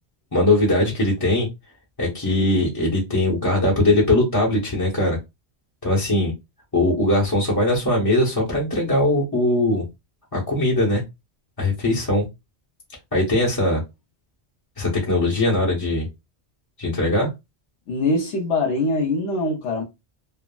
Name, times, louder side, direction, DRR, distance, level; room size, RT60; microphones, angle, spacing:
voice 1, 0.3-1.5 2.0-5.2 5.8-6.3 6.7-9.8 10.3-11.0 11.6-12.2 13.1-13.8 14.8-16.1 16.8-17.3, left 1 dB, 25° left, 0.7 m, -20 dB
voice 2, 17.9-19.8, left 2 dB, 80° left, 1.0 m, -23 dB
3.4 x 2.0 x 2.3 m
omnidirectional pair, 1.1 m